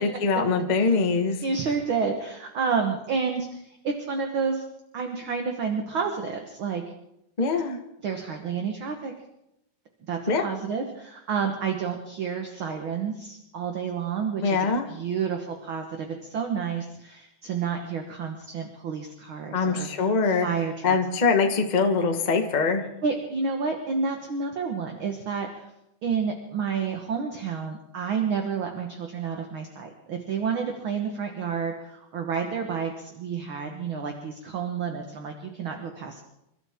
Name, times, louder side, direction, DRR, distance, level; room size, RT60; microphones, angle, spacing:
voice 1, 0.0-1.4 7.4-7.8 10.3-10.4 14.4-14.9 19.5-20.5 20.8-22.8, left 4 dB, 55° left, 4 dB, 0.4 m, -23 dB
voice 2, 1.4-4.6 4.9-6.8 8.0-9.1 10.1-21.0 23.0-25.7 26.0-36.2, right 6 dB, 50° right, 3 dB, 1.8 m, -30 dB
29.0 x 13.0 x 3.7 m, 0.85 s
omnidirectional pair, 3.4 m